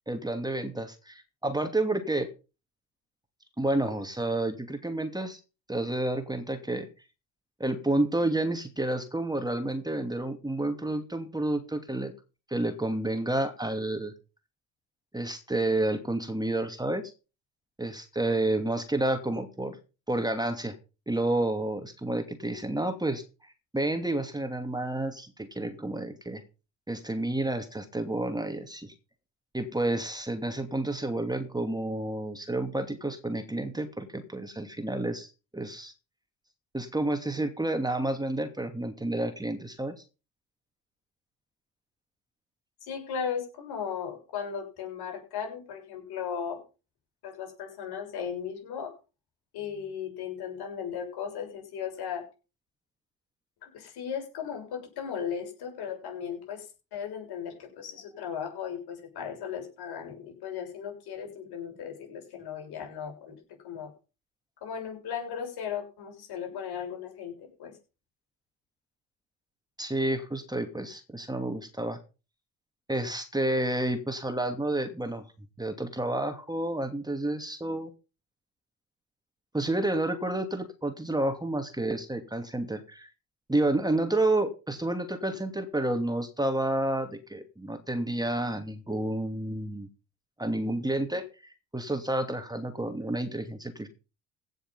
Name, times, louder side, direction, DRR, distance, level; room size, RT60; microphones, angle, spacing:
voice 1, 0.1-2.3 3.6-5.4 5.7-6.9 7.6-12.1 12.5-14.1 15.1-17.1 17.8-19.8 20.1-20.7 21.1-26.4 26.9-28.9 29.5-35.9 36.7-40.0 69.8-72.0 72.9-75.3 75.6-77.9 79.5-83.1 83.5-89.9 90.4-93.9, right 1 dB, 10° right, 7 dB, 2.6 m, -30 dB
voice 2, 42.8-46.6 47.2-48.9 49.5-52.2 53.6-63.4 63.6-63.9 64.6-67.7, left 7 dB, 65° left, 2 dB, 6.7 m, -36 dB
16.5 x 6.7 x 5.7 m, 0.33 s
hypercardioid pair, 60°, 41 cm